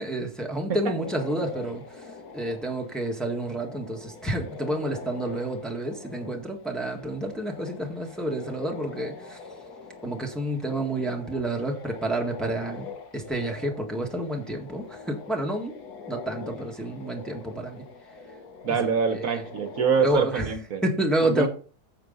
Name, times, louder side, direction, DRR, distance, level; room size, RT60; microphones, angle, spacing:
voice 1, 0.0-9.4 10.0-15.7 16.1-17.8 18.7-18.9 19.3-19.4 20.0-20.5 20.8-21.5, right 1 dB, ahead, 0 dB, 1.5 m, -29 dB
sound 1, 1.0-20.1, left 4 dB, 75° left, 1.8 m, -43 dB
voice 2, 18.6-20.8 21.2-21.5, right 6 dB, 65° right, 8 dB, 1.3 m, -25 dB
9.4 x 7.1 x 4.0 m, 0.41 s
omnidirectional pair, 1.7 m